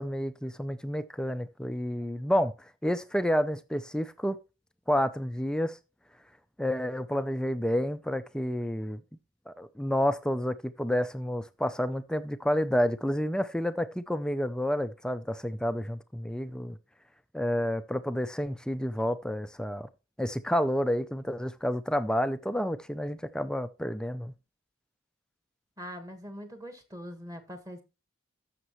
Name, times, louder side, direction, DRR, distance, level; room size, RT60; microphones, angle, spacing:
voice 1, 0.0-2.5 2.8-4.4 4.9-5.8 6.6-9.0 9.5-16.8 17.3-19.9 20.2-24.3, equal, 5° left, 0.4 m, -29 dB
voice 2, 25.8-27.8, equal, 15° right, 1.5 m, -42 dB
14.0 x 6.6 x 3.0 m
head